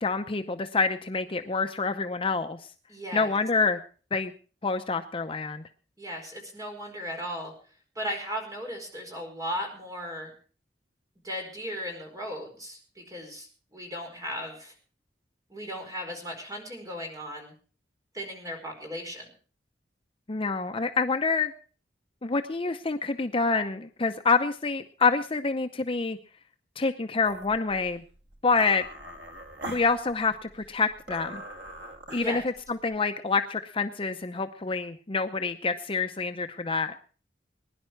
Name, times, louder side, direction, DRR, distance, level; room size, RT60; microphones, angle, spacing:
voice 1, 0.0-2.6 3.1-3.8 4.1-4.3 4.6-5.6 20.3-21.5 22.2-26.2 26.8-28.0 28.4-28.9 29.6-31.4 32.1-36.9, left 4 dB, 30° left, 7 dB, 0.7 m, -27 dB
voice 2, 2.9-3.3 6.0-7.5 7.9-10.3 11.2-14.7 15.5-17.5 18.1-19.3 32.2-32.4, equal, 20° right, 2 dB, 4.8 m, -36 dB
sound 1, 27.2-33.0, right 1 dB, 70° right, 1.9 m, -43 dB
20.5 x 11.0 x 4.6 m, 0.40 s
head